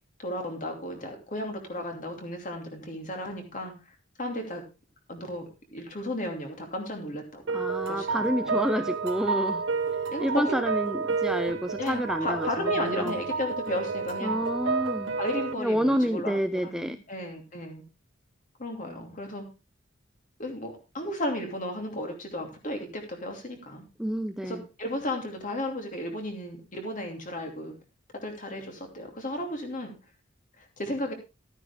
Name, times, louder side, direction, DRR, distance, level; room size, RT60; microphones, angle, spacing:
voice 1, 0.2-3.7 4.2-4.6 5.1-7.6 7.9-8.6 10.1-10.5 11.8-14.4 15.2-17.8 18.6-19.4 20.4-23.8 24.4-27.7 28.1-29.9 30.6-31.1, left 1 dB, 40° left, 3 dB, 2.7 m, -34 dB
voice 2, 7.5-9.6 10.2-13.2 14.2-15.1 15.6-17.0 24.0-24.7, equal, 5° right, 9 dB, 0.5 m, -29 dB
sound 1, 7.5-15.5, right 4 dB, 75° right, 1.3 m, -30 dB
12.5 x 9.6 x 3.5 m, 0.28 s
head